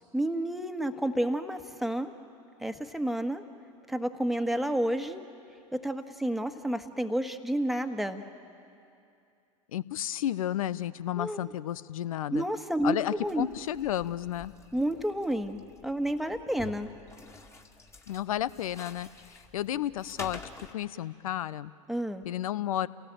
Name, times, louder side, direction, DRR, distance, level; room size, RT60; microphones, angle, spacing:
voice 1, 0.1-2.1 2.6-3.4 3.9-5.2 5.7-8.2 11.2-11.4 12.3-13.5 14.7-16.9 21.9-22.2, right 1 dB, ahead, 7 dB, 1.5 m, -30 dB
voice 2, 9.7-12.4 12.8-14.5 18.1-20.4 20.7-21.7 22.2-22.9, left 12 dB, 75° left, 17 dB, 0.7 m, -32 dB
sound 1, 13.2-20.7, left 3 dB, 15° left, 2.1 m, -49 dB
30.0 x 18.5 x 8.9 m, 2.5 s
figure-of-eight pair, 80°, 18 cm